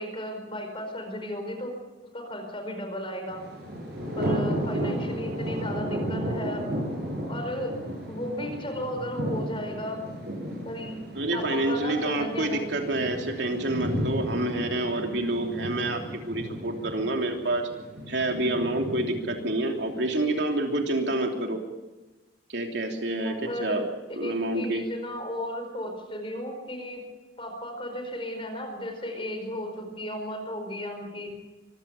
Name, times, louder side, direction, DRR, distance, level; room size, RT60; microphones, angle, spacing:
voice 1, 0.0-1.7 2.1-3.4 4.2-6.7 7.3-7.8 8.1-10.0 10.6-11.0 11.3-12.7 23.2-27.0 27.4-31.4, equal, 30° left, 5 dB, 4.8 m, -35 dB
Thunder, 3.3-20.3, equal, 65° right, 7.7 m, -34 dB
voice 2, 11.1-17.7 18.1-21.6 22.5-23.8 24.1-24.8, right 1 dB, 90° right, 3 dB, 3.1 m, -28 dB
24.5 x 15.5 x 7.1 m, 1.1 s
head